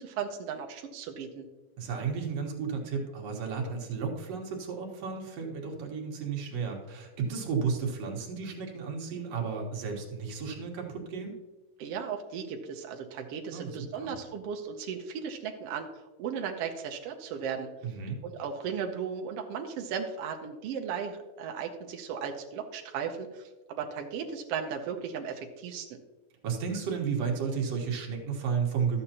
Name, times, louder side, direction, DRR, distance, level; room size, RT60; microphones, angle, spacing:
voice 1, 0.0-1.4 11.8-15.9 16.2-17.7 18.2-26.0, right 7 dB, 80° right, 3 dB, 1.3 m, -36 dB
voice 2, 1.8-11.3 13.5-14.1 17.8-18.2 26.4-29.0, right 6 dB, 60° right, 1 dB, 2.2 m, -33 dB
12.5 x 7.9 x 2.8 m, 1.1 s
omnidirectional pair, 3.7 m